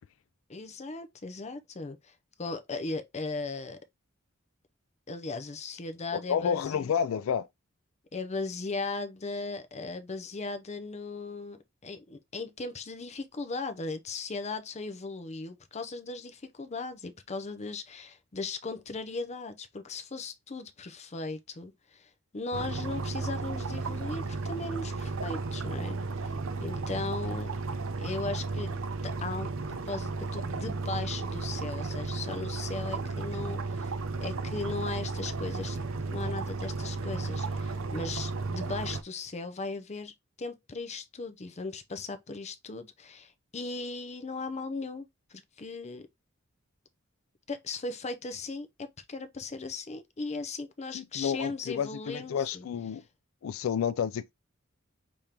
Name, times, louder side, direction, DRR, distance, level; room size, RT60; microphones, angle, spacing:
voice 1, 0.5-2.1 2.4-3.8 5.1-6.9 8.1-11.6 11.8-26.3 26.6-27.5 28.0-28.7 29.0-33.9 34.2-35.8 36.1-46.1 47.5-52.6, left 3 dB, 35° left, 0.6 m, -37 dB
voice 2, 6.1-7.5 50.9-53.0 53.4-54.3, left 7 dB, 80° left, 0.3 m, -30 dB
sound 1, 22.5-39.0, right 3 dB, 70° right, 0.6 m, -34 dB
5.1 x 3.5 x 2.9 m
head